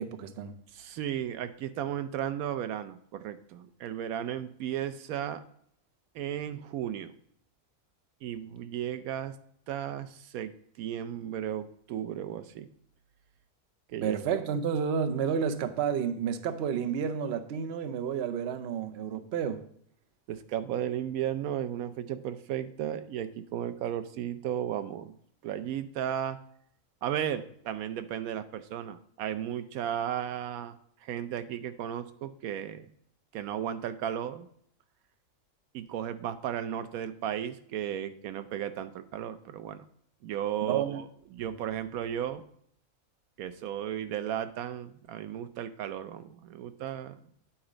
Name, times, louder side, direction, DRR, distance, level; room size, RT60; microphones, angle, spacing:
voice 1, 0.0-0.5 14.0-19.6 40.6-41.0, right 7 dB, 55° right, 7 dB, 0.8 m, -30 dB
voice 2, 0.7-5.4 6.1-7.1 8.2-9.3 9.7-10.5 10.8-12.7 13.9-14.2 20.3-25.2 25.4-26.4 27.0-32.9 33.3-34.5 35.7-39.8 40.2-42.4 43.4-47.2, right 10 dB, 85° right, 11 dB, 1.1 m, -35 dB
8.9 x 4.2 x 5.0 m, 0.66 s
omnidirectional pair, 1.5 m